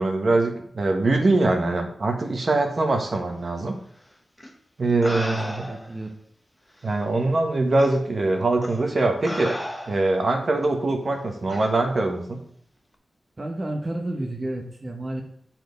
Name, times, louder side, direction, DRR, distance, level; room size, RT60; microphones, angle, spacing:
voice 1, 0.0-3.7 4.8-5.7 6.8-9.6 9.9-12.4, right 2 dB, 50° right, 4 dB, 1.4 m, -23 dB
sound 1, 4.4-4.5 5.0-6.0 6.8-6.9 7.8-8.0 8.6-8.8 9.2-10.2 11.5-11.7, left 1 dB, 5° left, 1.2 m, -34 dB
voice 2, 5.7-6.1 13.4-15.2, right 1 dB, 30° right, 2 dB, 1.2 m, -31 dB
10.5 x 4.6 x 5.3 m, 0.66 s
wide cardioid pair, 105°, 0 cm